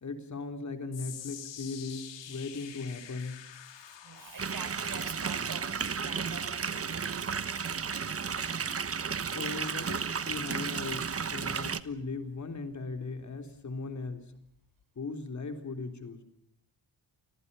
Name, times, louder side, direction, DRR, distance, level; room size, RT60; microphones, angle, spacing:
voice 1, 0.0-3.4 9.3-14.3 15.0-16.2, left 3 dB, 40° left, 6 dB, 3.7 m, -38 dB
sound 1, 0.9-13.2 13.6-13.9 14.6-14.7, left 10 dB, 80° left, 3.0 m, -50 dB
voice 2, 3.8-7.4, right 5 dB, 50° right, 9 dB, 6.0 m, -46 dB
sound 2, 4.4-11.8, right 6 dB, 35° right, 1.2 m, -33 dB
30.0 x 25.0 x 5.6 m, 0.73 s
wide cardioid pair, 130°, 43 cm